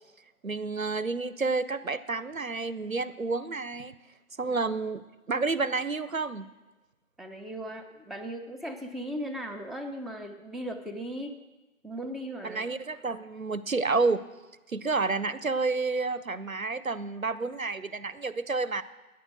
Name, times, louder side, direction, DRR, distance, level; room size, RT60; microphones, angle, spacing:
voice 1, 0.4-3.9 4.4-5.0 5.3-6.5 12.4-14.2 14.7-18.8, right 3 dB, 70° right, 16 dB, 0.7 m, -30 dB
voice 2, 7.2-11.4 11.8-12.7, equal, ahead, 5 dB, 0.6 m, -37 dB
14.0 x 9.6 x 6.3 m, 1.1 s
figure-of-eight pair, 180°, 43 cm